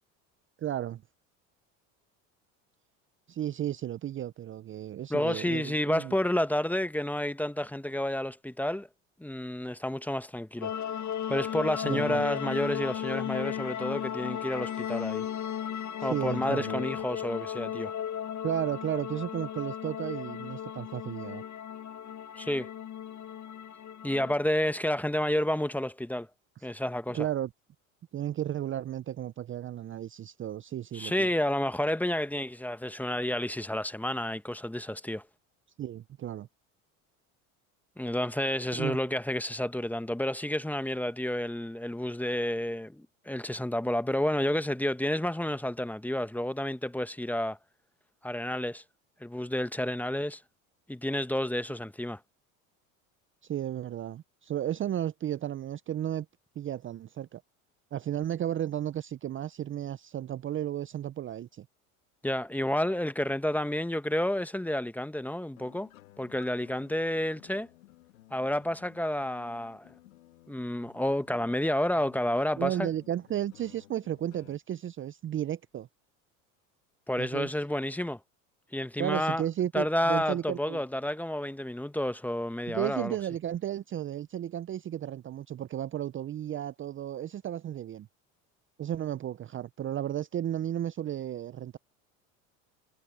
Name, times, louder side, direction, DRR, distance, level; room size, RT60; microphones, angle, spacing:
voice 1, 0.6-1.0 3.3-6.1 11.8-12.2 16.0-16.8 18.4-21.4 27.1-27.5 28.1-31.3 35.8-36.5 38.8-39.0 53.4-56.3 56.6-57.4 57.9-61.7 72.6-75.9 77.2-77.5 79.0-80.8 82.7-88.1 88.8-91.8, right 11 dB, 30° right, 0.6 m, -33 dB
voice 2, 5.1-8.9 9.2-10.7 11.3-15.3 16.0-17.9 22.4-22.7 24.0-26.3 26.6-27.2 30.9-35.2 38.0-47.6 48.2-48.8 49.2-50.4 50.9-52.2 62.2-65.9 66.2-67.7 68.3-69.9 70.5-72.9 77.1-78.2 78.7-79.4 79.7-83.2, left 1 dB, 5° left, 1.1 m, -30 dB
sound 1, 10.6-24.3, left 9 dB, 45° left, 1.8 m, -35 dB
sound 2, 65.6-74.6, left 15 dB, 85° left, 2.6 m, -56 dB
hypercardioid pair, 80°, 40 cm